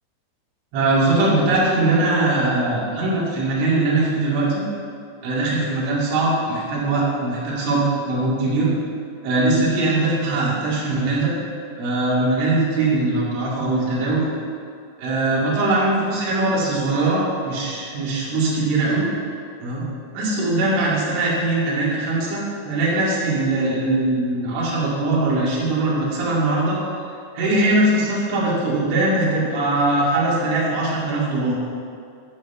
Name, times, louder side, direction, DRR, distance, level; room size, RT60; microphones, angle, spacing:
voice 1, 0.7-4.6 5.2-8.7 9.2-11.3 11.8-14.2 15.0-19.1 19.6-19.8 20.1-26.8 27.3-31.5, right 2 dB, 70° right, -7 dB, 4.8 m, -21 dB
12.5 x 5.4 x 6.9 m, 2.3 s
omnidirectional pair, 5.7 m